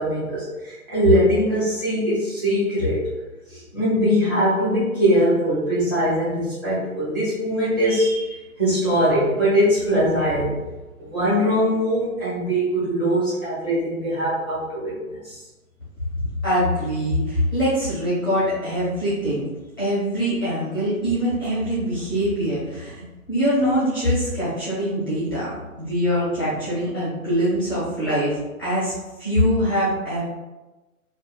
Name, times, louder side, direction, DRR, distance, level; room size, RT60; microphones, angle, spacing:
voice 1, 0.0-3.0 3.5-10.5 11.0-14.9 15.2-15.4, equal, 15° right, -11 dB, 0.7 m, -21 dB
voice 2, 16.4-19.4 19.8-28.9 29.2-30.2, equal, 15° left, -10 dB, 0.5 m, -23 dB
2.6 x 2.3 x 2.3 m, 1.1 s
figure-of-eight pair, 145°, 44 cm